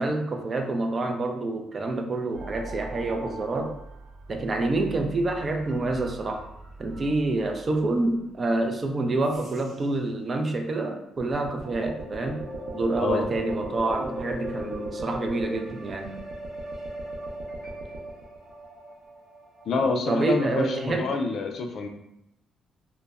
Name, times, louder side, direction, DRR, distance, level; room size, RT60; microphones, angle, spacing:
voice 1, 0.0-3.8 4.3-6.5 6.8-12.4 12.7-16.2 20.1-21.1, right 2 dB, 35° right, 4 dB, 0.4 m, -27 dB
sound 1, 2.3-8.0 9.2-10.0 11.2-19.9, right 1 dB, 55° right, 0.8 m, -39 dB
voice 2, 19.7-21.9, left 4 dB, 60° left, 3 dB, 0.4 m, -27 dB
2.1 x 2.1 x 3.4 m, 0.80 s
cardioid pair, 90°, 0 cm